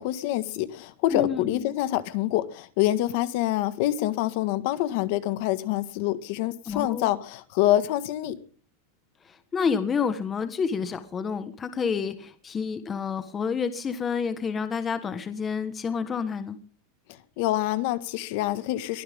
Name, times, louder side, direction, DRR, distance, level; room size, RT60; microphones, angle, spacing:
voice 1, 0.0-8.4 17.1-19.0, left 14 dB, 45° left, 1.7 m, -26 dB
voice 2, 1.1-1.6 6.7-7.1 9.2-16.6, left 6 dB, 15° left, 1.4 m, -29 dB
22.5 x 15.5 x 3.7 m
supercardioid pair, 175°, 0 cm